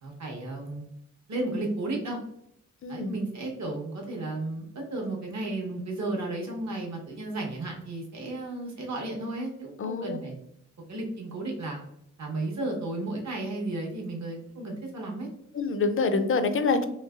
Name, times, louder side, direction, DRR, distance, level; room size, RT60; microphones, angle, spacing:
voice 1, 0.0-0.8 1.3-2.2 2.9-10.4 10.9-11.8 12.2-15.3, right 2 dB, 65° right, 0 dB, 1.0 m, -33 dB
voice 2, 2.8-3.1 9.8-10.2 15.5-16.9, left 4 dB, 45° left, 9 dB, 0.4 m, -26 dB
3.1 x 2.9 x 2.3 m, 0.76 s
cardioid pair, 75°, 30 cm